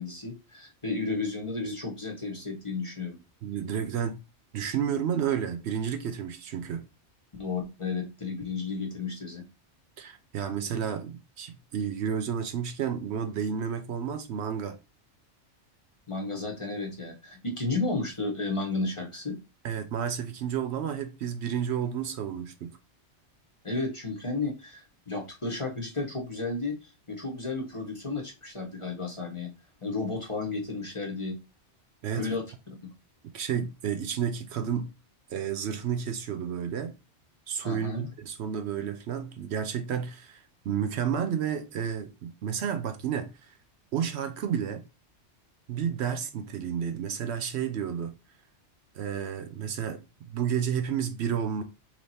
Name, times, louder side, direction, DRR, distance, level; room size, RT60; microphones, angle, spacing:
voice 1, 0.0-3.2 7.4-9.4 16.1-19.4 23.6-29.5 29.8-31.4 32.2-32.4 37.6-38.1, left 3 dB, 30° left, 0.8 m, -33 dB
voice 2, 3.4-4.2 4.5-6.8 10.0-14.8 19.6-22.8 32.0-32.4 33.3-34.9 35.3-36.9 37.5-43.5 43.9-44.8 45.7-48.1 48.9-51.6, right 8 dB, 70° right, 0.8 m, -31 dB
3.4 x 2.9 x 4.1 m
omnidirectional pair, 1.2 m